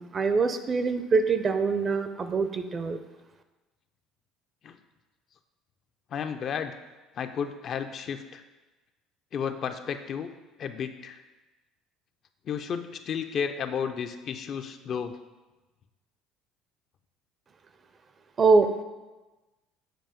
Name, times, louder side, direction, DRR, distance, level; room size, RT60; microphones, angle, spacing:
voice 1, 0.0-3.0 18.4-18.8, right 4 dB, 35° right, 9 dB, 0.4 m, -24 dB
voice 2, 6.1-6.8 7.2-8.4 9.3-10.3 10.6-11.2 12.5-15.2, left 7 dB, 50° left, 8 dB, 0.4 m, -32 dB
7.5 x 2.6 x 5.0 m, 1.2 s
supercardioid pair, 100°, 0 cm